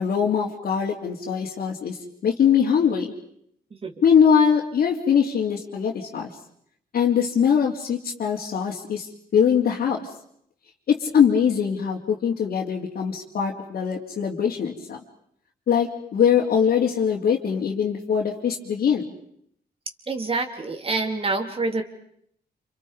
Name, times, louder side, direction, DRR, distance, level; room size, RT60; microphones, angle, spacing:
voice 1, 0.0-2.0 2.2-3.1 4.0-6.3 6.9-9.1 9.3-10.0 10.9-15.0 15.7-19.0, left 7 dB, 70° left, -4 dB, 3.6 m, -22 dB
voice 2, 20.1-21.8, right 3 dB, 35° right, 5 dB, 3.7 m, -26 dB
30.0 x 28.5 x 5.2 m, 0.69 s
cardioid pair, 110°, 17 cm